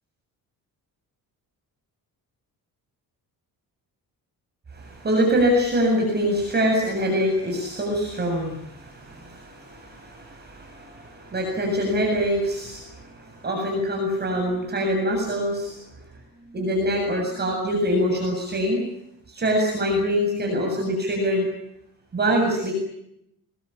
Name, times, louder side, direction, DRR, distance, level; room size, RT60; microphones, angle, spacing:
voice 1, 4.7-15.8 16.5-18.8 19.3-21.5 22.1-22.7, equal, 25° right, 0 dB, 7.7 m, -24 dB
26.0 x 21.5 x 8.8 m, 0.78 s
cardioid pair, 170°, 38 cm